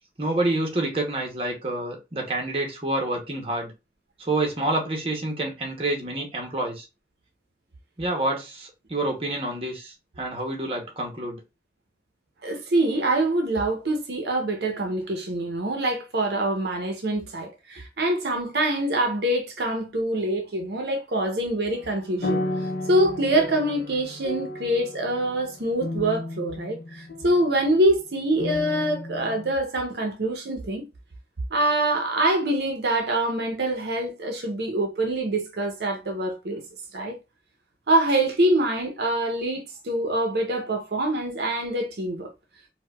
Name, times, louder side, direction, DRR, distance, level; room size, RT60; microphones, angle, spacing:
voice 1, 0.2-3.7 4.2-6.9 8.0-11.4, right 2 dB, 30° right, 0.7 m, -28 dB
voice 2, 12.4-22.4 22.9-30.9 31.5-36.6 36.9-37.2 37.9-42.3, right 1 dB, 65° right, 0.6 m, -25 dB
sound 1, 21.7-27.7 28.4-29.5, left 1 dB, 60° left, 0.5 m, -33 dB
4.5 x 2.1 x 2.2 m
head